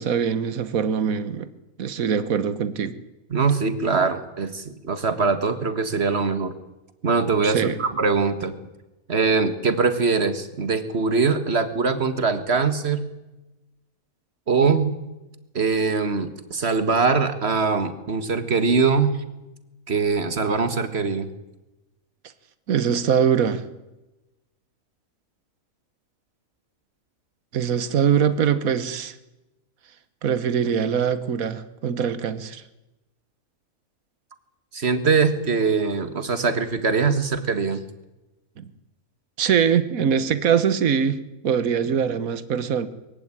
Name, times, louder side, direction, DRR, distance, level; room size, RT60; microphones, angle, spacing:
voice 1, 0.0-1.5 1.8-3.0 7.4-7.8 22.7-23.7 27.5-29.1 30.2-32.6 38.6-38.7 39.4-42.9, right 7 dB, 75° right, 14 dB, 1.6 m, -22 dB
voice 2, 3.3-6.5 7.0-8.5 9.1-13.1 14.5-14.9 15.6-19.2 19.9-21.3 34.7-37.8, right 4 dB, 50° right, 11 dB, 1.9 m, -22 dB
22.5 x 15.0 x 9.9 m, 1.0 s
omnidirectional pair, 1.5 m